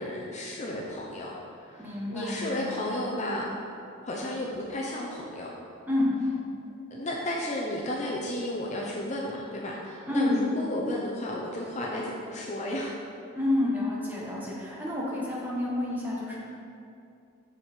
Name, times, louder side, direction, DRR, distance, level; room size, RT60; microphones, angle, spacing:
voice 1, 0.0-1.8 2.1-3.5 4.1-5.5 6.9-12.9, left 1 dB, 35° left, -3 dB, 0.7 m, -33 dB
voice 2, 1.8-2.8 5.9-6.1 10.1-10.4 13.3-16.4, left 1 dB, 10° right, -6 dB, 1.4 m, -29 dB
7.0 x 6.6 x 4.5 m, 2.6 s
head